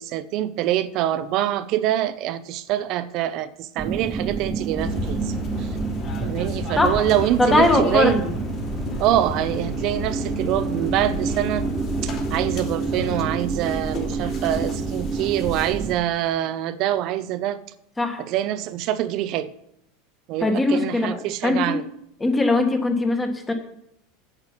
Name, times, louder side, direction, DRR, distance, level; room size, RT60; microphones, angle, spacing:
voice 1, 0.0-5.7 6.2-8.3 9.0-11.7 12.0-17.6 18.2-19.5 20.3-21.8, right 12 dB, 50° right, 14 dB, 0.7 m, -25 dB
sound 1, 3.8-16.0, right 5 dB, 20° right, 0.7 m, -29 dB
sound 2, 4.8-16.0, left 4 dB, 40° left, 2.7 m, -33 dB
voice 2, 7.4-8.3 18.0-18.2 20.4-21.2 21.4-21.8 22.2-23.5, left 2 dB, 10° left, 5 dB, 1.5 m, -20 dB
8.9 x 8.0 x 5.8 m, 0.76 s
supercardioid pair, 135°, 0 cm